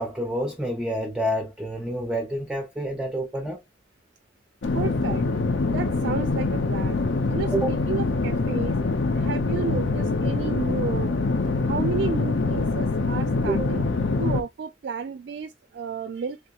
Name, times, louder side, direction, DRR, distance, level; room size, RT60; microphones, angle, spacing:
voice 1, 0.0-3.6 7.5-7.7 13.5-13.7, right 1 dB, 5° right, 0.5 m, -28 dB
sound 1, 4.6-14.4, left 3 dB, 80° left, 0.6 m, -24 dB
voice 2, 4.7-5.2 5.6-7.0 7.3-8.8 9.1-11.3 11.7-13.8 14.2-16.4, right 5 dB, 60° right, 0.3 m, -32 dB
3.3 x 2.9 x 2.3 m
head